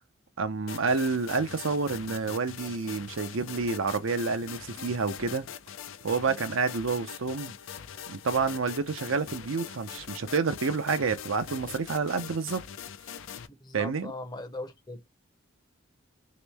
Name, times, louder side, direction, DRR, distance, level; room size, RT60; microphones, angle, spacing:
voice 1, 0.4-5.5 6.0-7.5 8.1-12.6 13.7-14.1, right 4 dB, 75° right, 0.6 m, -29 dB
sound 1, 0.7-13.5, left 8 dB, 75° left, 0.5 m, -42 dB
voice 2, 13.5-15.1, left 2 dB, 20° left, 0.7 m, -39 dB
3.1 x 2.9 x 3.4 m
head